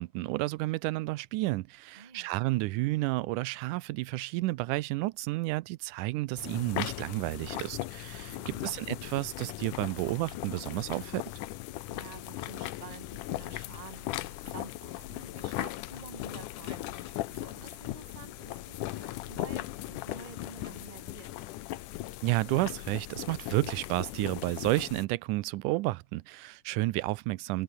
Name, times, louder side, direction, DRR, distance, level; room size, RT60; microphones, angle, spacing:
voice 1, 0.0-11.2 22.2-27.6, right 19 dB, 85° right, 2.2 m, -31 dB
voice 2, 1.9-2.3 8.3-8.7 11.9-21.3, right 5 dB, 60° right, 0.4 m, -50 dB
sound 1, 6.4-25.1, left 16 dB, 85° left, 2.5 m, -38 dB
omnidirectional pair, 3.5 m